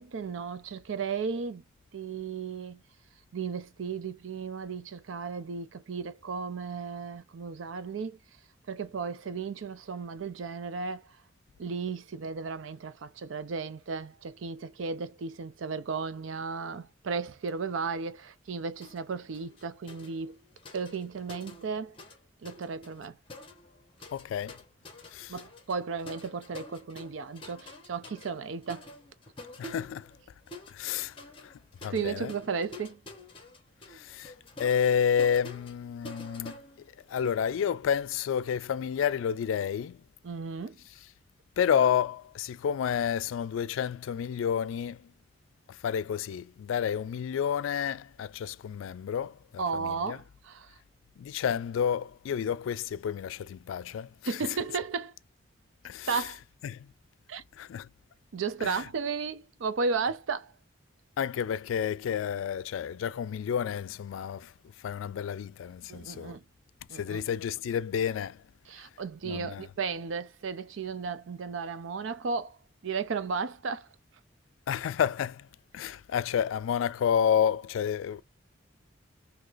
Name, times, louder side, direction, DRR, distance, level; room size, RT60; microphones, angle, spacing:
voice 1, 0.0-1.6 1.9-2.8 3.3-8.2 8.7-11.1 11.6-20.4 20.7-22.0 22.4-23.2 25.3-28.9 31.9-33.0 40.2-40.8 49.6-50.7 54.3-55.1 56.1-56.4 57.3-57.4 58.3-60.5 65.9-66.4 66.9-67.2 68.7-72.6 72.8-73.9, right 5 dB, 80° right, 0.5 m, -34 dB
sound 1, 18.8-19.1 19.3-22.2 22.4-37.4, left 1 dB, 25° left, 0.9 m, -48 dB
voice 2, 24.1-24.6 25.1-25.3 29.6-30.1 30.7-31.1 31.4-31.5 31.8-32.3 33.9-34.3 34.6-36.6 37.1-40.0 41.6-45.1 45.7-50.2 51.2-54.4 55.8-56.3 56.6-56.9 57.6-57.9 58.6-58.8 61.2-64.5 64.8-66.4 66.9-68.4 68.8-68.9 69.2-69.7 74.7-75.5 75.7-78.2, left 8 dB, 85° left, 0.3 m, -30 dB
3.9 x 2.7 x 2.4 m
head